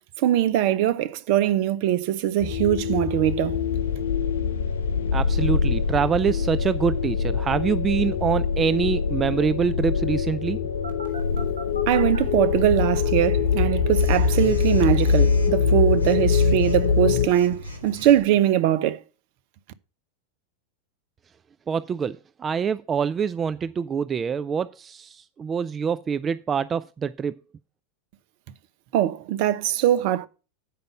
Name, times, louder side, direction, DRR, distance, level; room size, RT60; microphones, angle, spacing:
voice 1, 0.0-3.6 11.9-19.0 28.9-30.3, right 12 dB, 55° right, 0.8 m, -22 dB
sound 1, 2.4-17.3, left 6 dB, 70° left, 0.6 m, -23 dB
voice 2, 5.1-10.6 21.7-27.4, right 6 dB, 25° right, 0.4 m, -25 dB
Telephone, 10.8-12.2 13.9-18.3, equal, 90° right, 2.0 m, -40 dB
8.5 x 5.2 x 6.9 m
figure-of-eight pair, 90°, 0 cm